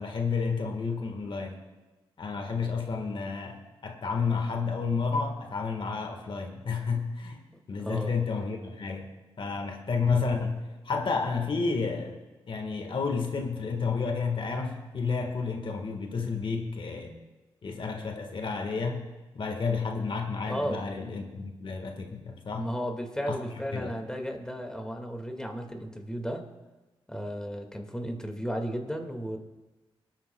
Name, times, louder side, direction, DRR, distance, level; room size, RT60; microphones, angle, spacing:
voice 1, 0.0-1.6 2.2-7.4 7.7-9.1 9.4-10.6 10.8-12.2 12.5-17.2 17.6-19.1 19.3-22.7 23.3-23.4 23.7-23.9, left 4 dB, 55° left, 4 dB, 1.5 m, -31 dB
voice 2, 7.8-8.1 20.5-20.8 22.6-26.4 27.1-29.4, equal, 5° left, 3 dB, 1.9 m, -34 dB
23.5 x 8.9 x 2.3 m, 1.1 s
cardioid pair, 60°, 10 cm